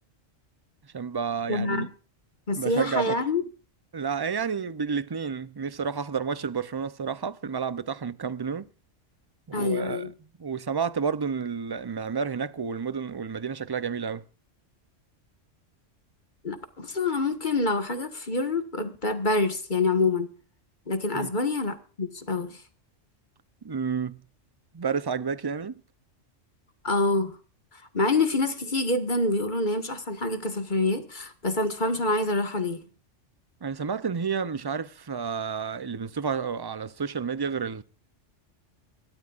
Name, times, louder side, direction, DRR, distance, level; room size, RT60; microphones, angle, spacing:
voice 1, 0.9-1.9 2.6-3.2 3.9-8.7 9.5-10.0 10.4-14.2 21.1-21.3 23.6-24.2 24.7-25.8 33.6-37.8, right 6 dB, 30° right, 0.4 m, -30 dB
voice 2, 1.5-1.9 2.5-3.4 9.5-10.1 16.4-20.3 20.9-22.6 26.8-27.4 27.9-32.8, left 2 dB, 40° left, 1.7 m, -26 dB
25.5 x 13.5 x 2.5 m
omnidirectional pair, 1.3 m